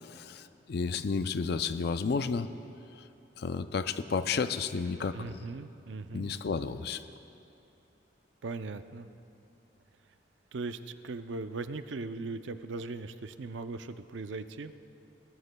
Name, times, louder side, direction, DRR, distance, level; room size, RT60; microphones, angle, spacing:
voice 1, 0.0-2.5 3.0-3.1 3.4-5.5 6.1-7.0, left 5 dB, 60° left, 11 dB, 0.4 m, -32 dB
voice 2, 5.1-6.3 8.4-9.1 10.5-14.7, right 3 dB, 75° right, 10 dB, 0.5 m, -39 dB
21.5 x 19.0 x 2.2 m, 2.7 s
head